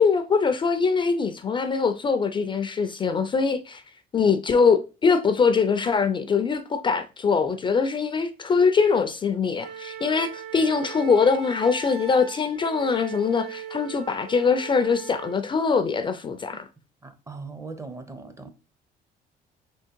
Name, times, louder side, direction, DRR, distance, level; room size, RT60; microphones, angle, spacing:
voice 1, 0.0-3.8 4.1-16.7, left 5 dB, 30° left, 0.4 m, -22 dB
Wind instrument woodwind instrument, 9.6-15.4, right 8 dB, 90° right, 1.0 m, -39 dB
voice 2, 17.0-18.5, right 4 dB, 15° right, 0.6 m, -39 dB
3.6 x 2.9 x 4.4 m
cardioid pair, 110°, 17 cm